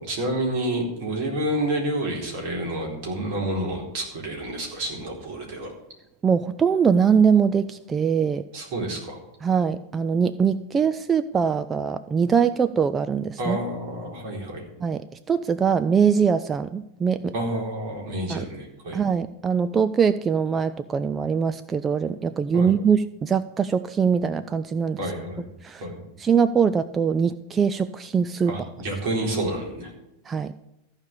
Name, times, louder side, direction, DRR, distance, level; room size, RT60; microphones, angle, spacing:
voice 1, 0.0-5.7 8.5-9.2 13.4-14.7 17.3-19.0 22.5-22.7 25.0-25.4 25.8-26.0 28.5-29.9, right 1 dB, 45° right, 0 dB, 4.1 m, -29 dB
voice 2, 6.2-8.4 9.4-13.6 14.8-15.0 15.3-17.3 18.3-18.5 18.9-25.0 25.6-25.8 26.2-28.5 30.3-30.5, right 6 dB, 20° right, 12 dB, 0.4 m, -22 dB
14.5 x 5.2 x 8.4 m, 0.89 s
figure-of-eight pair, 90°, 0 cm